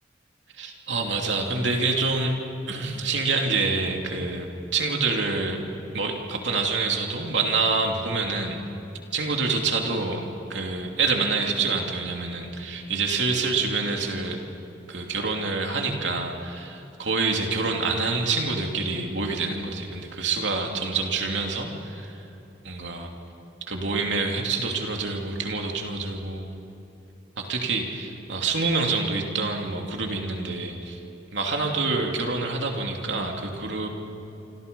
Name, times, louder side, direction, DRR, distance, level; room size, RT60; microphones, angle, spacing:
voice 1, 0.5-2.3 2.7-5.7 5.9-8.6 9.1-14.4 14.9-22.2 22.6-23.1 23.7-26.5 27.4-31.0 31.3-33.9, right 3 dB, 75° right, 2 dB, 2.9 m, -27 dB
27.5 x 25.5 x 5.4 m, 3.0 s
head